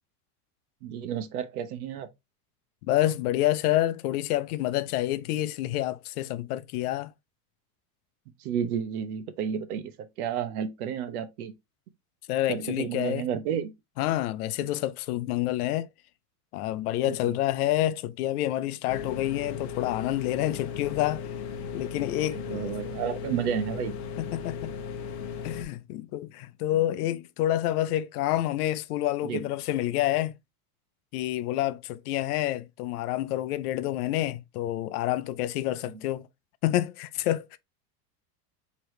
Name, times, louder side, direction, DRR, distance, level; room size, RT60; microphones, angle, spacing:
voice 1, 0.8-2.1 8.4-11.5 12.5-13.7 17.1-17.3 22.3-23.9 29.2-29.4, right 8 dB, 75° right, 0.9 m, -31 dB
voice 2, 2.9-7.1 12.3-13.3 14.0-15.9 16.5-21.3 21.7-22.8 24.2-24.7 25.4-30.4 31.1-36.3 36.6-37.6, left 14 dB, 75° left, 0.6 m, -28 dB
sound 1, 18.9-25.6, left 6 dB, 45° left, 0.7 m, -36 dB
4.7 x 3.1 x 3.1 m
supercardioid pair, 180°, 45 cm